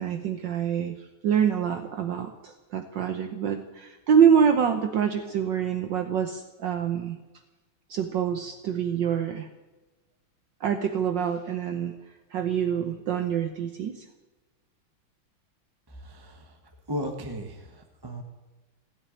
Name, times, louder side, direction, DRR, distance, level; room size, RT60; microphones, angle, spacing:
voice 1, 0.0-7.2 7.9-9.5 10.6-11.9 12.3-14.0, right 8 dB, 65° right, 7 dB, 1.5 m, -25 dB
voice 2, 15.9-16.6 16.9-18.2, equal, 15° right, 4 dB, 0.9 m, -36 dB
17.0 x 7.7 x 9.9 m, 1.2 s
omnidirectional pair, 2.3 m